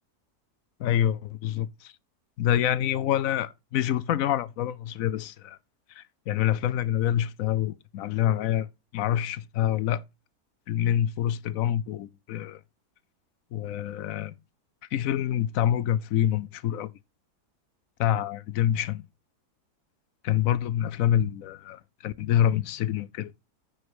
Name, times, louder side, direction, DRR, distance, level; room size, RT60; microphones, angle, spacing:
voice 1, 0.8-1.9 2.4-5.6 5.9-8.7 8.9-10.0 10.7-12.6 13.5-14.3 14.9-16.9 18.0-19.1 20.2-23.3, left 11 dB, 65° left, 1.0 m, -26 dB
9.4 x 5.4 x 4.8 m
omnidirectional pair, 1.7 m